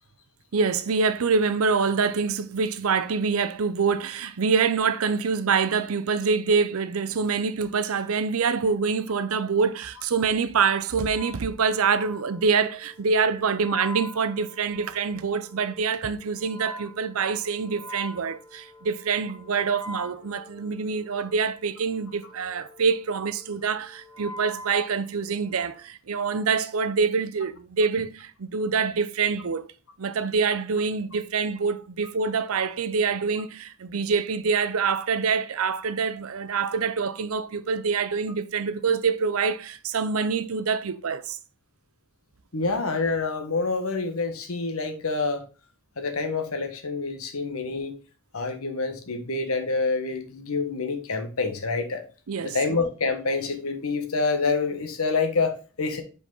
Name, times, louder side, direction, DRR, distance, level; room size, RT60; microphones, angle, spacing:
voice 1, 0.5-29.7 30.0-41.4 52.3-52.6, right 5 dB, 85° right, 0.6 m, -25 dB
Wind instrument woodwind instrument, 11.0-25.7, left 1 dB, 20° left, 1.3 m, -44 dB
voice 2, 42.5-45.4 46.0-47.9 48.3-52.0 52.4-56.0, left 4 dB, 85° left, 1.3 m, -27 dB
5.1 x 5.1 x 3.9 m
head